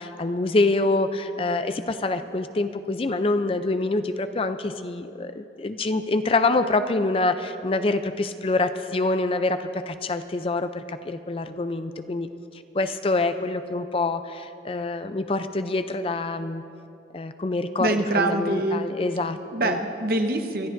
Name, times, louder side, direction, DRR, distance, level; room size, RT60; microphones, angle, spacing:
voice 1, 0.0-12.3 12.7-16.6 17.1-19.8, left 2 dB, 30° left, 10 dB, 0.4 m, -26 dB
voice 2, 17.8-18.8 19.5-20.7, right 2 dB, 55° right, 5 dB, 1.0 m, -24 dB
25.0 x 13.5 x 2.6 m, 2.6 s
head